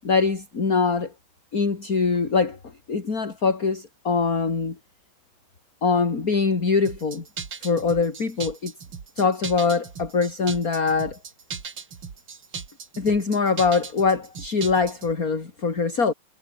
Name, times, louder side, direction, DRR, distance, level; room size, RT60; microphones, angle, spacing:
voice 1, 0.0-1.1 1.5-2.6 2.9-4.7 5.8-7.2 7.6-8.7 9.2-11.2 13.0-16.1, left 4 dB, 45° left, 3.3 m, -23 dB
sound 1, 6.8-15.1, right 6 dB, 90° right, 3.3 m, -38 dB
omnidirectional pair, 2.2 m